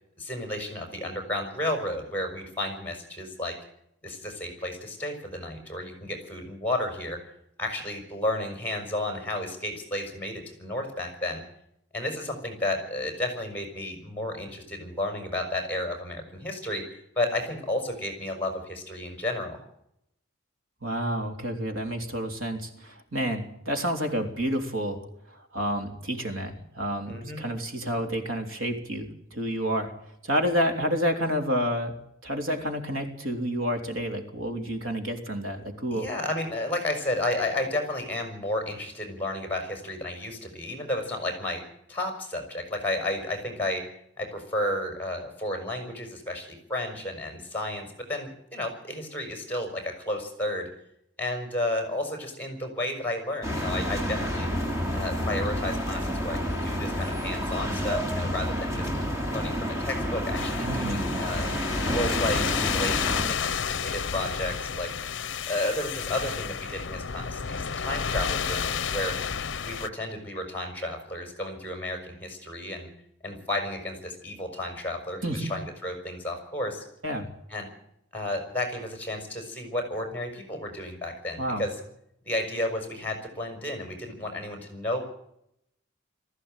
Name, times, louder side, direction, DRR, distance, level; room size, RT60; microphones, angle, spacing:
voice 1, 0.2-3.6 4.0-7.2 7.6-11.4 11.9-19.6 27.1-27.4 35.9-43.9 44.2-50.7 51.2-54.5 54.9-58.9 59.3-61.5 61.8-64.9 65.5-69.2 69.6-72.9 73.2-76.8 77.5-77.7 78.1-81.7 82.3-85.0, left 1 dB, 10° left, 5 dB, 5.3 m, -32 dB
voice 2, 20.8-29.9 30.2-31.9 32.2-36.1 60.6-61.1 75.2-75.5 77.0-77.3 81.4-81.6, equal, 90° right, 5 dB, 3.4 m, -29 dB
sound 1, 53.4-63.3, equal, 15° right, 3.0 m, -29 dB
sound 2, 60.3-69.9, left 7 dB, 65° left, 0.7 m, -31 dB
19.5 x 15.0 x 9.1 m, 0.76 s
head